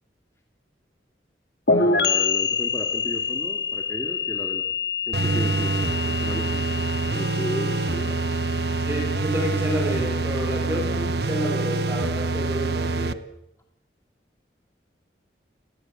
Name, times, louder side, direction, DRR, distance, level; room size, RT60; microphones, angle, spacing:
sound 1, 1.7-9.2, left 4 dB, 65° left, 2.1 m, -26 dB
voice 1, 1.7-4.6 5.1-6.7 7.1-8.4, equal, 15° left, 4 dB, 2.2 m, -34 dB
sound 2, 5.1-13.1, right 3 dB, 65° right, 1.0 m, -25 dB
voice 2, 8.9-13.2, equal, 15° right, 2 dB, 4.1 m, -30 dB
30.0 x 17.5 x 7.5 m, 0.75 s
head